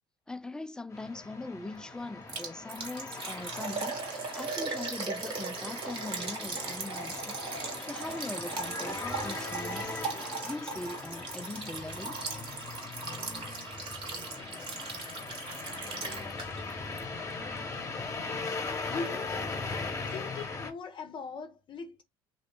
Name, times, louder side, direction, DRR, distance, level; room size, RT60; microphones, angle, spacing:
voice 1, 0.3-7.4 7.8-12.2, left 2 dB, 5° left, 0.3 m, -41 dB
sound 1, 0.9-20.7, left 3 dB, 25° left, 1.0 m, -40 dB
Liquid, 2.3-16.7 17.0-17.1 17.6-17.7, right 4 dB, 45° right, 1.3 m, -38 dB
voice 2, 18.9-19.6 20.1-22.0, left 4 dB, 40° left, 0.6 m, -40 dB
2.7 x 2.5 x 3.4 m
supercardioid pair, 75°, 12 cm